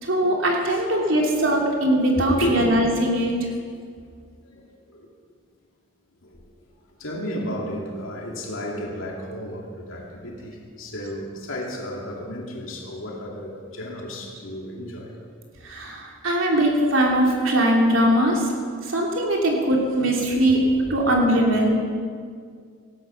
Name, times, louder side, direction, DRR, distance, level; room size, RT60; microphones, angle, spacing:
voice 1, 0.0-3.3 15.6-18.5 18.8-20.6 20.9-21.8, right 1 dB, 75° right, -1 dB, 3.1 m, -21 dB
voice 2, 2.2-2.7 4.4-5.1 6.2-6.4 7.0-15.2 20.3-20.6 20.9-21.0, equal, 85° left, -1 dB, 2.5 m, -32 dB
18.0 x 13.5 x 5.9 m, 2.1 s
head